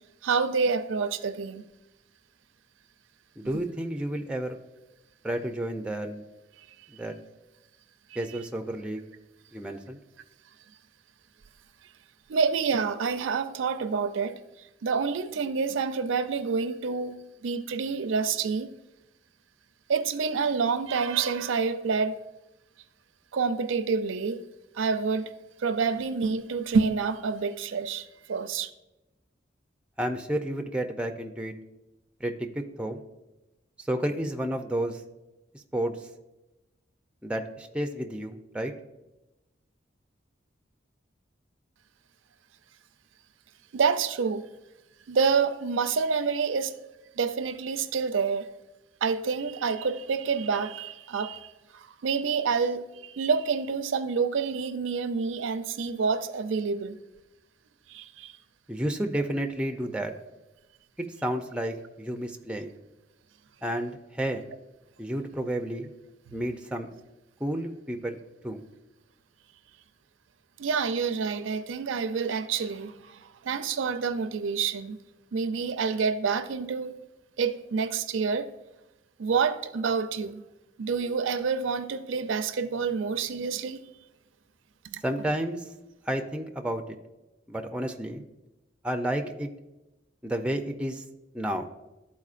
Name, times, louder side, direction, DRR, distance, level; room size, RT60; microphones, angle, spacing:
voice 1, 0.2-1.6 8.1-8.2 12.3-14.4 14.8-17.2 17.4-18.7 19.9-22.2 23.3-24.4 24.7-25.3 25.6-28.7 43.7-44.5 45.1-46.8 47.2-48.5 49.0-57.0 57.9-58.4 66.3-66.4 70.6-75.0 75.3-77.0 77.4-78.5 79.2-80.4 80.8-83.8 84.9-85.0, right 5 dB, 85° right, 0.4 m, -28 dB
voice 2, 3.4-4.6 5.2-6.2 7.0-7.1 8.2-9.0 9.5-10.0 30.0-31.5 32.2-33.0 33.8-35.0 35.7-35.9 37.2-38.7 58.7-60.1 61.0-62.8 63.6-64.4 65.0-65.9 66.3-66.9 67.4-68.2 68.4-68.6 85.0-85.6 86.1-86.8 87.5-88.2 88.8-89.5 90.2-91.0 91.3-91.7, right 1 dB, 5° right, 0.4 m, -31 dB
12.0 x 4.2 x 2.5 m
head